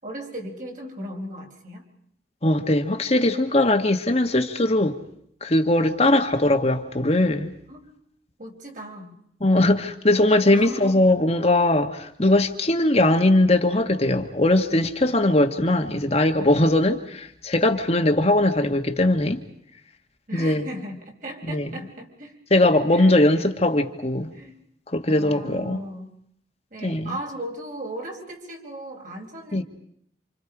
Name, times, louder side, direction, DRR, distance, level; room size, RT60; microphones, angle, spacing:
voice 1, 0.0-1.8 7.7-8.0 8.4-9.2 10.5-11.0 20.3-22.4 22.9-23.2 23.6-23.7 24.3-24.6 25.0-26.1 26.7-29.6, right 1 dB, 45° right, 4.8 m, -37 dB
voice 2, 2.4-5.0 5.4-7.5 9.4-19.4 20.3-20.6 21.5-21.7 22.5-24.3 24.9-25.8 26.8-27.1 29.5-29.6, left 1 dB, 35° left, 1.6 m, -20 dB
29.0 x 27.5 x 5.0 m
head